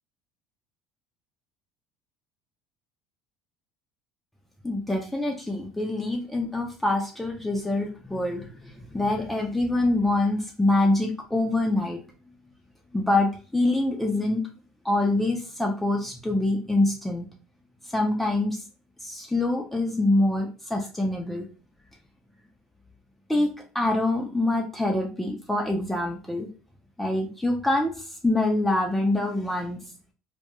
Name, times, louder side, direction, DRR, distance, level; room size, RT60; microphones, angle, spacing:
voice 1, 4.6-12.0 12.9-14.4 14.8-17.3 17.9-18.6 19.0-21.4 23.3-23.5 23.7-26.5 27.0-29.8, left 2 dB, 5° left, 1 dB, 0.4 m, -25 dB
2.2 x 2.1 x 2.9 m, 0.37 s
supercardioid pair, 85°, 2 cm